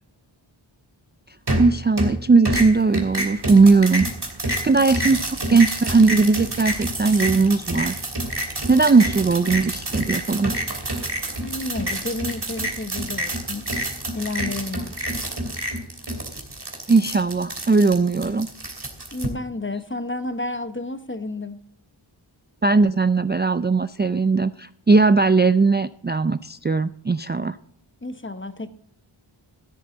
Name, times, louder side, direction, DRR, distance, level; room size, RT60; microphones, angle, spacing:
sound 1, 1.5-2.2 2.5-19.3, right 1 dB, 55° right, 2.9 m, -28 dB
voice 1, 1.6-4.1 4.5-8.0 8.7-10.5 16.9-18.5 22.6-27.6, right 4 dB, 25° right, 0.4 m, -18 dB
voice 2, 11.4-13.6 14.1-14.9 19.1-21.6 28.0-28.7, left 2 dB, 25° left, 1.0 m, -31 dB
13.5 x 11.0 x 3.9 m
wide cardioid pair, 55°, 49 cm